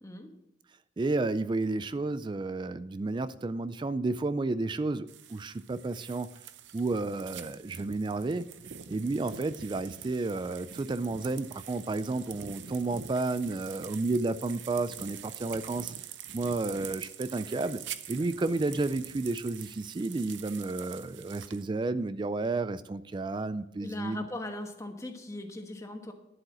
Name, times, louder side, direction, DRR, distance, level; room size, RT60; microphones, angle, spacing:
voice 1, 0.0-0.3 18.2-18.5 23.8-26.1, left 1 dB, 15° left, 5 dB, 1.2 m, -40 dB
voice 2, 1.0-6.3 6.7-8.5 8.9-15.9 16.3-17.8 18.1-24.2, right 3 dB, 25° right, 15 dB, 0.3 m, -31 dB
sound 1, 5.1-21.6, right 9 dB, 85° right, 0.7 m, -45 dB
11.0 x 7.9 x 6.2 m, 0.87 s
head